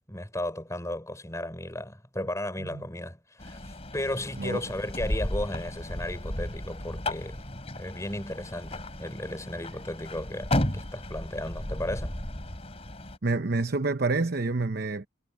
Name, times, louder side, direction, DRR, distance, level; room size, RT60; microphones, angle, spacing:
voice 1, 0.1-7.4 7.8-12.2, left 1 dB, 15° left, 5.9 m, -35 dB
sound 1, 3.4-13.2, left 1 dB, 30° left, 3.4 m, -34 dB
voice 2, 13.2-15.1, right 3 dB, 50° right, 0.9 m, -27 dB
head